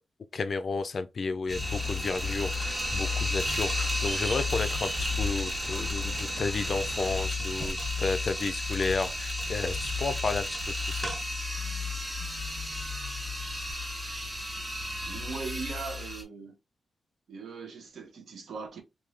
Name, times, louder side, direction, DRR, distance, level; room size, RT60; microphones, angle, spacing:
voice 1, 0.3-10.6 10.9-11.1, left 4 dB, 40° left, 0.4 m, -32 dB
sound 1, 1.5-16.2, left 2 dB, 15° right, 1.4 m, -32 dB
sound 2, 1.6-7.3, right 1 dB, 35° right, 0.9 m, -41 dB
voice 2, 15.0-16.6 17.3-18.8, right 4 dB, 75° right, 0.9 m, -39 dB
3.7 x 2.6 x 3.2 m
wide cardioid pair, 175°, 0 cm